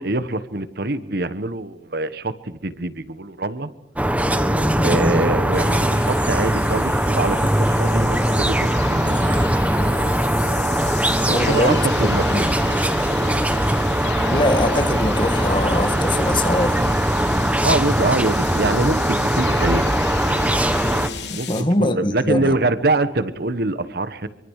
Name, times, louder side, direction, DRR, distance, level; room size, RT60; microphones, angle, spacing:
voice 1, 0.0-3.7 4.5-9.2 11.2-12.5 17.6-19.9 21.3-24.3, right 2 dB, 60° right, 1.4 m, -24 dB
sound 1, 4.0-21.1, right 1 dB, 10° right, 1.4 m, -20 dB
sound 2, 5.5-21.6, left 7 dB, 70° left, 3.4 m, -35 dB
voice 2, 11.3-12.4 14.3-16.8 21.3-22.5, left 1 dB, 30° left, 2.0 m, -22 dB
25.5 x 25.0 x 6.6 m
head